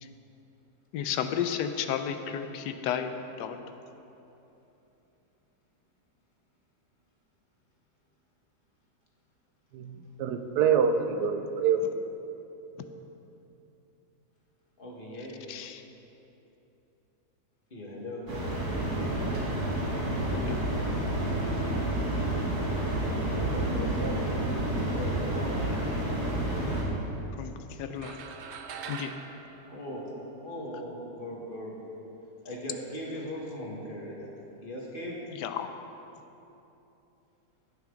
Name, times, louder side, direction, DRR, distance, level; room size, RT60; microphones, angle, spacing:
voice 1, 0.9-3.1 3.4-3.6 15.5-15.8 20.3-21.5 25.8-25.9 27.4-28.2 28.9-29.1 35.3-35.7, left 8 dB, 85° left, 8 dB, 1.2 m, -33 dB
voice 2, 9.7-11.8, right 7 dB, 90° right, 7 dB, 1.2 m, -26 dB
voice 3, 14.8-15.4 17.7-18.3 23.0-24.2 24.9-25.6 29.6-30.0 30.4-31.7 32.4-35.2, equal, 35° left, -3 dB, 1.7 m, -39 dB
sound 1, 18.3-26.8, right 1 dB, 50° right, 2.3 m, -29 dB
sound 2, 28.0-30.6, right 6 dB, 70° right, 0.6 m, -43 dB
16.5 x 6.0 x 3.8 m, 3.0 s
omnidirectional pair, 1.7 m